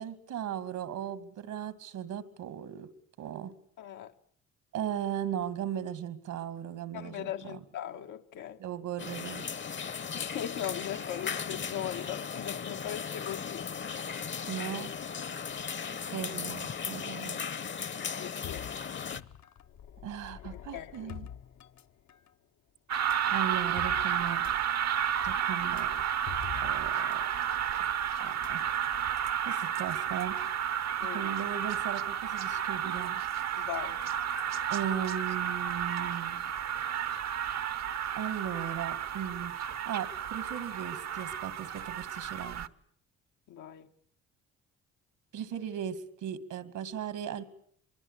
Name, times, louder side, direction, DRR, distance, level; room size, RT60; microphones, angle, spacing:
voice 1, 0.0-2.9 3.2-3.5 4.7-7.6 8.6-9.5 14.5-14.9 15.9-17.4 20.0-21.3 23.3-24.4 25.2-25.9 26.6-27.3 28.2-28.6 29.5-30.4 31.0-33.2 34.7-36.4 38.1-42.7 45.3-47.4, right 9 dB, 80° right, 2.4 m, -37 dB
voice 2, 3.8-4.1 6.9-8.6 10.1-13.7 18.1-18.7 20.7-21.1 31.0-31.3 33.6-34.0 43.5-43.9, left 10 dB, 90° left, 1.7 m, -39 dB
sound 1, 9.0-19.2, left 6 dB, 40° left, 1.0 m, -37 dB
sound 2, 18.4-22.3 22.9-27.2 27.4-27.6 28.3-29.1, left 10 dB, 65° left, 1.0 m, -47 dB
sound 3, 22.9-42.7, right 9 dB, 60° right, 1.0 m, -32 dB
25.0 x 23.0 x 8.4 m
cardioid pair, 90°, 30 cm